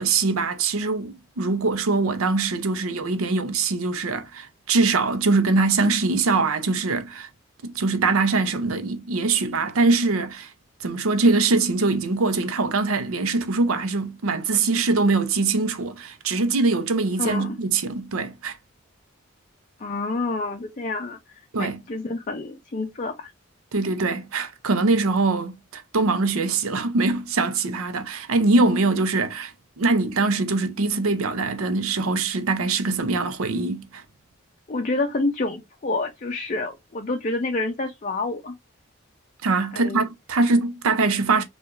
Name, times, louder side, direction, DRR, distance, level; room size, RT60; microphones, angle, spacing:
voice 1, 0.0-7.3 7.6-10.5 10.8-18.6 21.5-21.8 23.7-34.0 39.4-41.4, right 3 dB, 85° right, 0.6 m, -23 dB
voice 2, 17.2-17.6 19.8-23.3 34.7-38.5 39.7-40.1, left 2 dB, 35° left, 0.4 m, -28 dB
4.6 x 2.4 x 2.4 m
head